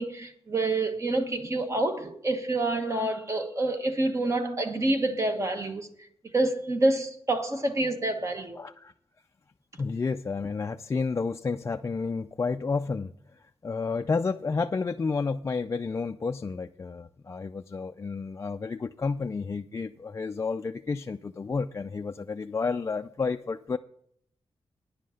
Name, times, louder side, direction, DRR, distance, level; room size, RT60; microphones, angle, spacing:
voice 1, 0.0-5.9 6.3-8.6, right 2 dB, 30° right, 1.3 m, -27 dB
voice 2, 8.6-8.9 9.8-13.1 13.6-23.8, left 4 dB, 30° left, 0.3 m, -31 dB
10.0 x 7.6 x 6.4 m
wide cardioid pair, 135°, 10 cm